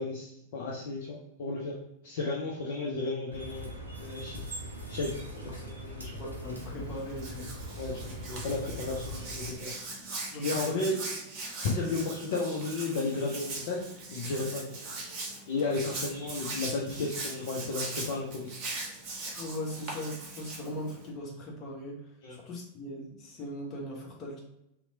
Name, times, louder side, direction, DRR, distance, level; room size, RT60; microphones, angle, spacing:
voice 1, 0.0-1.7 2.0-3.7 4.0-4.4 4.9-5.1 5.4-6.1 7.8-9.7 10.4-10.9 11.6-13.9 14.1-14.7 15.5-18.6 22.2-22.4, left 3 dB, 55° left, -3 dB, 0.4 m, -33 dB
sound 1, 3.3-9.5, equal, 85° right, 0.5 m, -41 dB
voice 2, 6.2-7.5 10.3-10.8 19.4-24.4, left 1 dB, 30° left, -2 dB, 0.8 m, -39 dB
Hands, 6.4-21.1, right 3 dB, 40° right, 0.7 m, -40 dB
2.8 x 2.0 x 2.6 m, 0.82 s
figure-of-eight pair, 90°, 0 cm